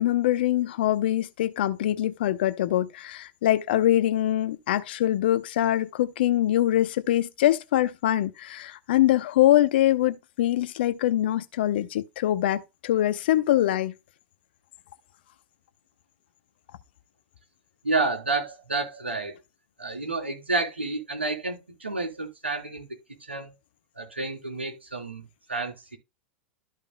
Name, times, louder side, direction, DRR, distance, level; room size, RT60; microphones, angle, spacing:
voice 1, 0.0-13.9, left 13 dB, 60° left, 0.8 m, -23 dB
voice 2, 17.8-19.3 19.8-22.9 23.3-23.5 23.9-25.2 25.5-26.0, right 3 dB, 85° right, 3.4 m, -30 dB
14.0 x 5.3 x 2.2 m
figure-of-eight pair, 90°, 6 cm